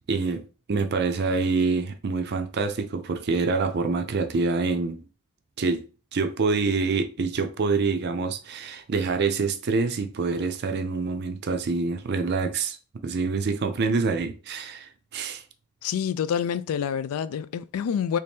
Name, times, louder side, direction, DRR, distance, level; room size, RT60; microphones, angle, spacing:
voice 1, 0.1-5.0 5.6-5.8 6.1-12.8 13.0-15.4, right 4 dB, 50° right, 0.4 m, -26 dB
voice 2, 15.8-18.2, left 8 dB, 75° left, 0.3 m, -27 dB
3.2 x 2.7 x 3.4 m
head